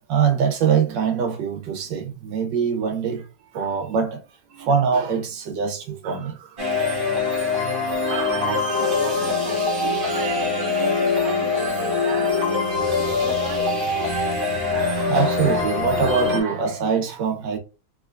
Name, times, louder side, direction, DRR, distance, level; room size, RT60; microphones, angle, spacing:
voice 1, 0.1-3.3 3.5-4.2 4.5-7.1 8.0-8.9 10.0-10.2 12.7-13.3 14.7-17.6, right 6 dB, 90° right, 1.5 m, -24 dB
sound 1, 6.6-16.4, left 4 dB, 40° right, 0.9 m, -23 dB
voice 2, 8.3-12.5 12.9-14.1, right 6 dB, 70° right, 1.1 m, -36 dB
3.8 x 2.8 x 2.5 m
omnidirectional pair, 1.9 m